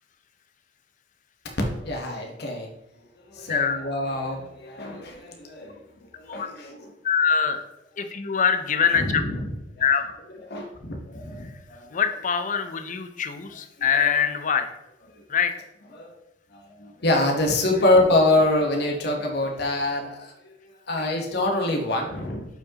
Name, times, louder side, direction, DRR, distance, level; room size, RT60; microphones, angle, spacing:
voice 1, 1.8-2.7 3.3-6.9 8.9-9.4 9.8-9.9 10.5-12.0 14.0-14.1 15.1-15.2 15.9-16.1 16.5-20.3 20.9-22.4, left 2 dB, 60° left, 1 dB, 1.1 m, -25 dB
voice 2, 7.0-7.7 8.0-9.2 9.8-10.0 11.4-11.5 11.9-14.7 15.3-15.5 21.0-21.1, left 7 dB, 45° left, 8 dB, 0.6 m, -23 dB
8.0 x 4.7 x 2.9 m, 0.88 s
head